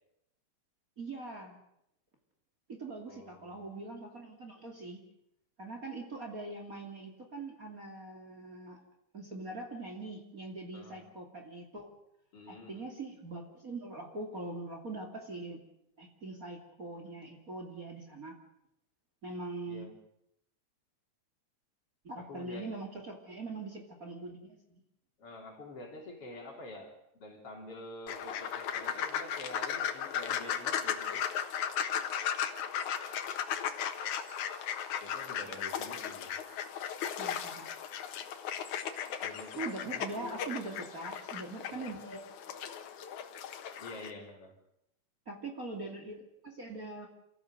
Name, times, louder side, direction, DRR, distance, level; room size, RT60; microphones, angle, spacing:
voice 1, 1.0-1.6 2.7-5.0 5.6-8.8 9.1-11.9 12.5-15.6 16.0-18.3 19.2-19.9 22.0-24.8 37.2-37.7 39.6-42.5 45.3-47.1, right 2 dB, 30° right, 2 dB, 2.8 m, -42 dB
voice 2, 3.1-3.7 10.7-11.0 12.3-12.9 19.7-20.0 22.2-22.8 25.2-31.2 35.0-36.4 39.2-40.5 41.7-42.0 43.8-44.6, left 2 dB, 50° left, 2 dB, 4.4 m, -47 dB
sound 1, 28.1-44.1, left 8 dB, 85° left, 2.8 m, -36 dB
29.0 x 14.5 x 7.8 m, 0.79 s
omnidirectional pair, 3.4 m